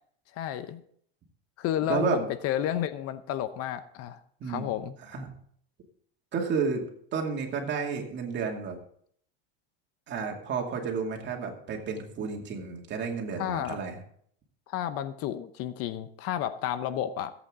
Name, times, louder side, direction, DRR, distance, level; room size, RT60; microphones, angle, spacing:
voice 1, 0.3-0.8 1.6-4.2 4.5-5.0 13.4-13.8 14.7-17.3, left 11 dB, 50° left, 12 dB, 0.8 m, -31 dB
voice 2, 4.4-4.7 5.1-5.3 6.3-6.8 7.1-8.8 10.1-14.0, right 5 dB, 35° right, 2 dB, 2.5 m, -31 dB
16.5 x 8.4 x 3.7 m, 0.64 s
supercardioid pair, 130°, 30 cm